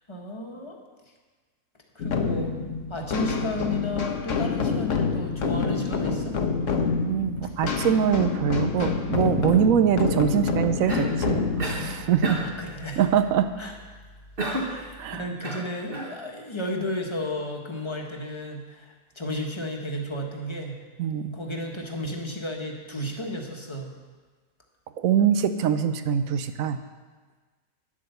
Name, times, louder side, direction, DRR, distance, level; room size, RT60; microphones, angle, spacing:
voice 1, 0.1-0.8 1.9-2.6 2.9-6.4 12.6-13.1 13.6-13.7 14.5-20.7 21.3-23.9, left 1 dB, 20° left, 1 dB, 1.3 m, -33 dB
sound 1, 2.0-13.4, left 5 dB, 60° left, 1.3 m, -27 dB
voice 2, 7.1-12.4 13.0-13.5 14.7-15.2 21.0-21.4 25.0-26.8, right 8 dB, 75° right, 10 dB, 1.1 m, -23 dB
Cough, 10.9-11.2 11.6-11.9 12.2-12.6 14.4-14.8 15.4-16.2, right 1 dB, 40° right, 1.6 m, -31 dB
9.7 x 8.6 x 6.8 m, 1.4 s
omnidirectional pair, 1.5 m